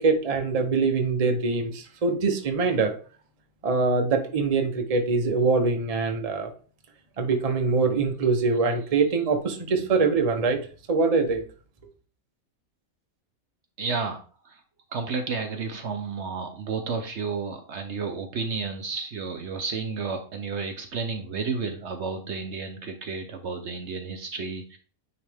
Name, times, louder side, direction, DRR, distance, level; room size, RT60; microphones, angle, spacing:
voice 1, 0.0-3.0 3.6-6.5 7.2-10.6 10.9-11.5, right 4 dB, 30° right, 0.8 m, -23 dB
voice 2, 13.8-14.6 14.9-24.8, right 4 dB, 60° right, 0.9 m, -32 dB
9.6 x 3.2 x 3.4 m
omnidirectional pair, 1.5 m